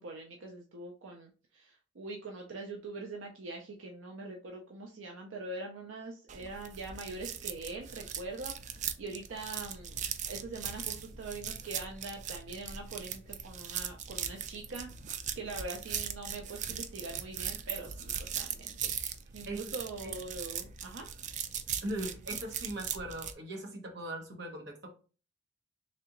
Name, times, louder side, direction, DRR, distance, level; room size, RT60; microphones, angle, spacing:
voice 1, 0.0-14.9 15.4-21.1, right 3 dB, 80° right, 1 dB, 0.6 m, -43 dB
sound 1, 6.3-23.3, right 8 dB, 40° right, 0.3 m, -39 dB
voice 2, 21.8-24.9, right 1 dB, 60° right, 1 dB, 1.1 m, -39 dB
3.3 x 2.8 x 3.8 m, 0.37 s
head